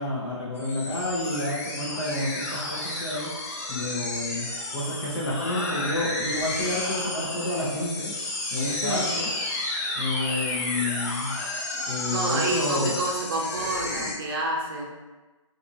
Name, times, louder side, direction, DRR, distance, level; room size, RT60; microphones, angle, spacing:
voice 1, 0.0-3.3 3.7-8.1 8.5-9.3 9.9-11.3 11.9-13.0, left 1 dB, 50° left, -6 dB, 0.8 m, -30 dB
sound 1, 0.6-14.1, left 2 dB, 30° left, 0.4 m, -31 dB
voice 2, 11.7-14.9, right 2 dB, 45° right, -1 dB, 0.6 m, -29 dB
2.6 x 2.5 x 2.7 m, 1.2 s
hypercardioid pair, 155°, 17 cm